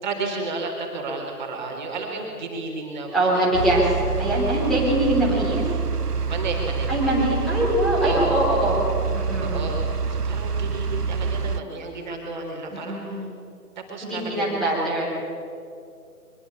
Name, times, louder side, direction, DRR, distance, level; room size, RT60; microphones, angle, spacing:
voice 1, 0.0-3.5 6.3-7.4 7.9-8.2 9.4-9.8 10.1-13.2 13.8-14.8, right 3 dB, 30° right, 1 dB, 3.8 m, -32 dB
voice 2, 3.1-5.7 6.9-8.8 9.1-9.6 12.7-13.2 14.0-15.0, right 1 dB, ahead, -8 dB, 3.8 m, -23 dB
sound 1, 3.5-11.6, right 5 dB, 80° right, 1.1 m, -26 dB
24.0 x 22.0 x 8.5 m, 2.5 s
figure-of-eight pair, 150°, 46 cm